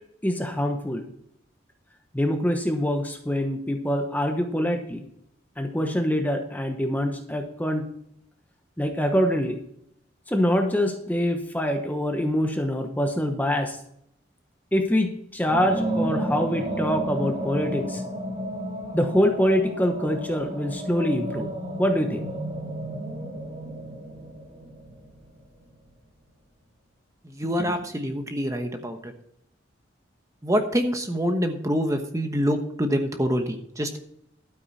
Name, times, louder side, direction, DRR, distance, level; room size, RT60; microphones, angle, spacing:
voice 1, 0.2-1.0 2.1-5.0 5.6-7.9 8.8-9.6 10.3-13.8 14.7-18.0 18.9-21.5 21.8-22.2, equal, 10° left, 5 dB, 1.0 m, -25 dB
sound 1, 15.5-25.6, right 1 dB, 35° right, 3.3 m, -32 dB
voice 2, 27.2-29.1 30.4-34.0, equal, 15° right, 6 dB, 1.1 m, -26 dB
12.0 x 9.2 x 4.2 m, 0.72 s
head